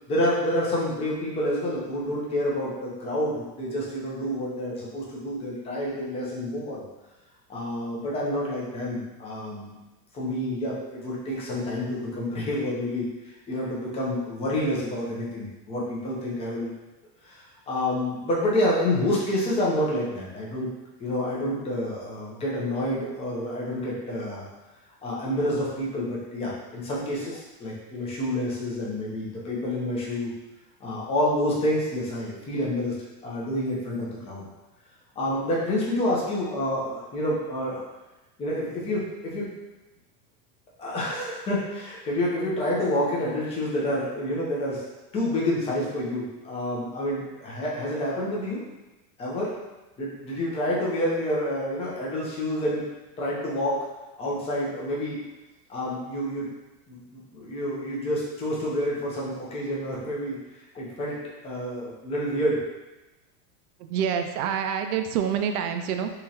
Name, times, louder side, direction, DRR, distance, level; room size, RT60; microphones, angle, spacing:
voice 1, 0.1-6.9 7.5-9.7 10.1-16.7 17.2-20.7 21.0-24.5 25.0-30.3 30.8-33.0 33.2-34.5 35.2-37.8 38.4-39.5 40.8-44.8 45.1-48.6 49.2-49.5 50.0-52.8 53.2-53.8 54.2-55.2 55.7-56.5 56.9-60.4 60.7-61.2 61.4-62.6, left 1 dB, 15° left, -5 dB, 0.5 m, -28 dB
voice 2, 63.8-66.1, right 8 dB, 70° right, 7 dB, 0.5 m, -27 dB
3.8 x 3.0 x 2.8 m, 1.1 s
supercardioid pair, 150°, 48 cm